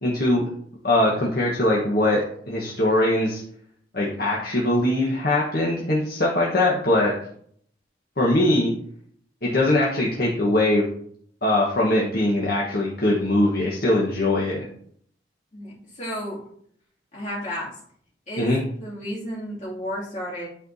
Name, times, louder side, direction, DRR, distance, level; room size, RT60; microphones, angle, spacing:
voice 1, 0.0-0.4 0.8-3.4 3.9-7.1 8.2-8.7 9.4-10.8 11.4-14.6 18.4-18.6, left 1 dB, 55° left, -4 dB, 1.2 m, -21 dB
voice 2, 15.5-16.4 17.1-17.7 18.3-20.5, equal, 40° left, -6 dB, 2.6 m, -32 dB
11.0 x 4.4 x 2.7 m, 0.63 s
head